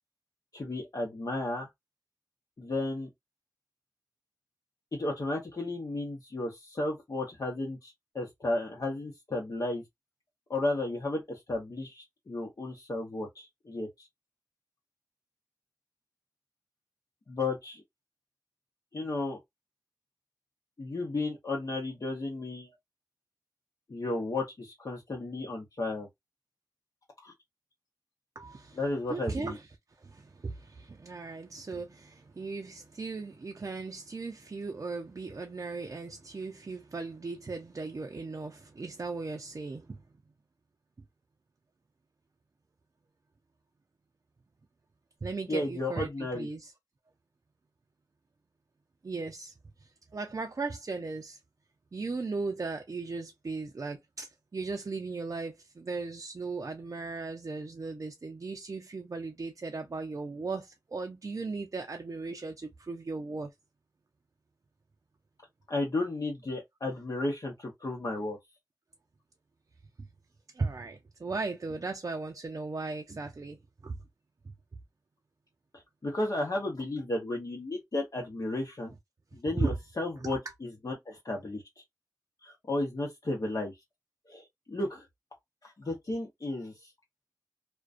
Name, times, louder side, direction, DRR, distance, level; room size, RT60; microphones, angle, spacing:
voice 1, 0.5-1.7 2.6-3.1 4.9-9.8 10.5-14.1 17.3-17.8 18.9-19.4 20.8-22.8 23.9-26.1 27.2-27.3 28.7-29.6 45.5-46.5 65.7-68.4 76.0-78.9 79.3-81.6 82.4-83.7 84.3-85.0 85.6-86.9, left 2 dB, 60° left, 0.8 m, -33 dB
voice 2, 28.4-28.8 29.1-29.7 30.0-40.0 45.2-46.7 49.0-51.4 51.9-63.5 70.0-70.1 70.5-74.0 79.6-79.7 80.2-80.3, right 3 dB, 50° right, 0.4 m, -37 dB
2.3 x 2.2 x 2.4 m
cardioid pair, 40°, 7 cm